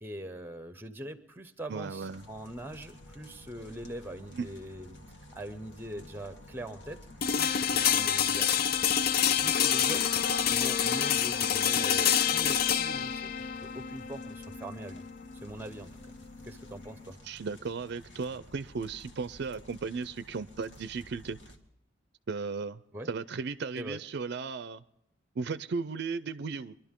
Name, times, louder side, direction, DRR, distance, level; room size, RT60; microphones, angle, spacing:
voice 1, 0.0-5.0 5.3-7.0 7.3-8.5 9.4-13.3 13.6-15.0 15.4-15.9 16.4-17.2 22.9-23.1 23.8-24.0, right 1 dB, 10° right, 11 dB, 0.8 m, -42 dB
voice 2, 1.7-2.2 4.3-4.5 17.2-21.4 22.3-22.8 23.1-24.8 25.4-26.7, right 4 dB, 60° right, 14 dB, 0.4 m, -35 dB
sound 1, 2.1-21.6, left 1 dB, 65° left, 1.6 m, -52 dB
sound 2, 7.2-17.1, left 9 dB, 50° left, 0.4 m, -28 dB
23.0 x 12.0 x 3.7 m, 0.80 s
head